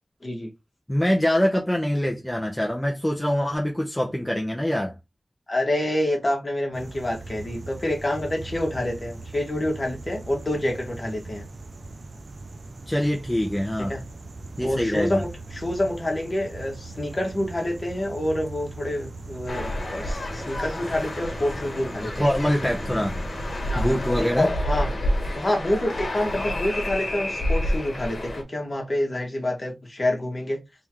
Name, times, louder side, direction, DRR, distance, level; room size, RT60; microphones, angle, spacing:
voice 1, 0.9-4.9 12.9-14.0 14.6-15.2 22.2-23.2 23.7-24.5, equal, 10° left, 0.8 m, -24 dB
voice 2, 5.5-11.5 13.8-14.0 14.6-22.3 23.7-24.9 25.2-30.6, left 1 dB, 40° left, 1.8 m, -27 dB
sound 1, 6.7-24.3, right 3 dB, 60° right, 0.4 m, -40 dB
sound 2, 19.5-28.4, left 1 dB, 70° left, 1.3 m, -29 dB
3.5 x 3.5 x 3.0 m
wide cardioid pair, 80°, 0 cm